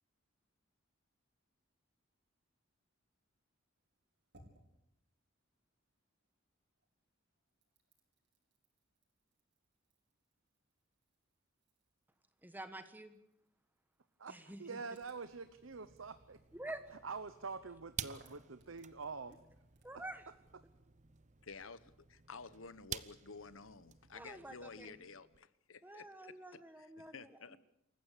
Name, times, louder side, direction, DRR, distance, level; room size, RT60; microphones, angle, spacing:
sound 1, 3.7-6.4 6.7-20.0, right 1 dB, 60° right, 5.1 m, -70 dB
voice 1, 12.4-13.2 14.3-14.8 16.5-16.8 19.8-20.2 24.1-25.0 25.8-27.6, right 1 dB, 10° right, 1.2 m, -48 dB
voice 2, 14.2-16.4 17.0-19.4, right 4 dB, 80° right, 1.0 m, -46 dB
sound 2, 14.9-25.4, right 8 dB, 35° right, 0.8 m, -52 dB
voice 3, 21.4-26.3 26.8-27.6, left 4 dB, 80° left, 1.1 m, -52 dB
27.5 x 15.0 x 8.4 m
head